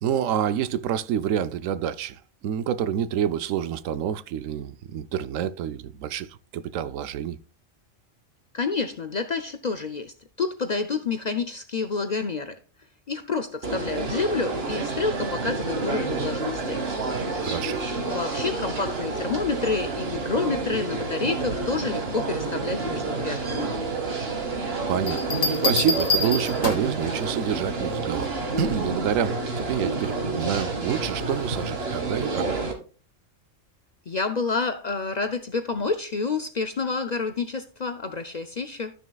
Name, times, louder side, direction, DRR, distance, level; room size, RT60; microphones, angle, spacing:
voice 1, 0.0-2.2 2.4-6.3 6.5-7.4 17.4-17.8 24.9-32.5, right 9 dB, 85° right, 1.0 m, -28 dB
voice 2, 8.5-12.6 13.1-16.8 18.0-23.7 34.1-38.9, left 4 dB, 50° left, 0.5 m, -29 dB
sound 1, 13.6-32.7, right 3 dB, 50° right, 1.6 m, -29 dB
Bell, 25.1-27.0 28.6-29.0, left 3 dB, 85° left, 1.7 m, -27 dB
13.5 x 6.3 x 2.3 m
omnidirectional pair, 1.3 m